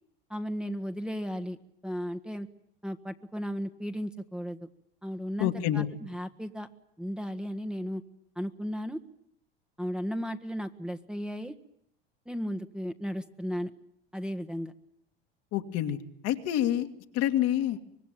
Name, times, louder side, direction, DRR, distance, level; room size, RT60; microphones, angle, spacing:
voice 1, 0.3-1.6 1.8-2.5 2.8-4.7 5.0-6.7 7.0-8.0 8.3-9.0 9.8-11.5 12.2-13.7 14.1-14.7, equal, 5° right, 5 dB, 1.5 m, -35 dB
voice 2, 5.4-5.9 15.5-16.0 16.2-16.9 17.1-17.8, left 12 dB, 60° left, 7 dB, 2.3 m, -27 dB
25.0 x 21.0 x 9.2 m, 0.74 s
hypercardioid pair, 80°, 29 cm